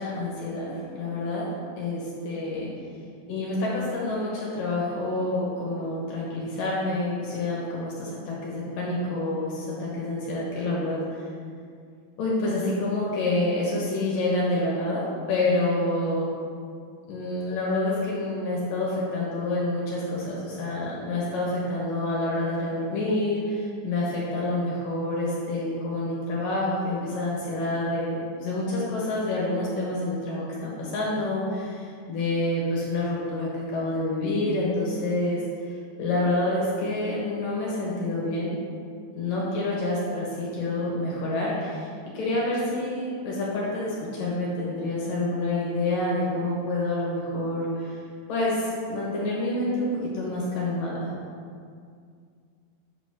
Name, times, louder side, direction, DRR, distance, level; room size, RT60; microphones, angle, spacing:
voice 1, 0.0-1.5 1.8-2.7 3.3-11.0 12.2-16.3 17.1-35.4 36.0-38.5 39.1-41.9 42.1-47.9 48.3-51.1, left 2 dB, 65° left, -5 dB, 2.6 m, -28 dB
8.0 x 4.0 x 6.2 m, 2.2 s
omnidirectional pair, 4.8 m